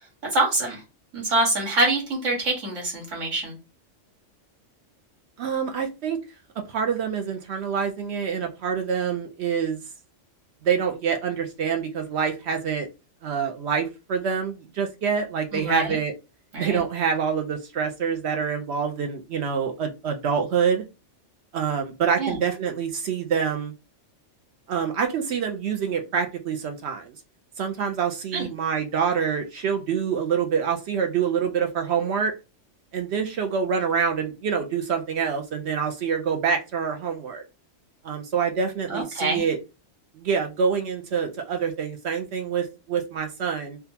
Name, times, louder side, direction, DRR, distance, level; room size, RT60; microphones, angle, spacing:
voice 1, 0.3-0.8 1.1-3.6 15.5-16.0 16.5-16.8 22.2-22.3 28.3-28.4 38.9-39.4, right 2 dB, 90° right, -1 dB, 1.8 m, -25 dB
voice 2, 5.4-6.2 6.7-9.8 10.6-12.9 13.2-16.1 16.6-20.8 21.5-23.7 24.7-27.1 27.6-32.3 32.9-37.4 38.0-39.6 40.1-43.8, right 7 dB, 65° right, 5 dB, 0.8 m, -26 dB
3.6 x 2.3 x 2.7 m, 0.27 s
omnidirectional pair, 1.3 m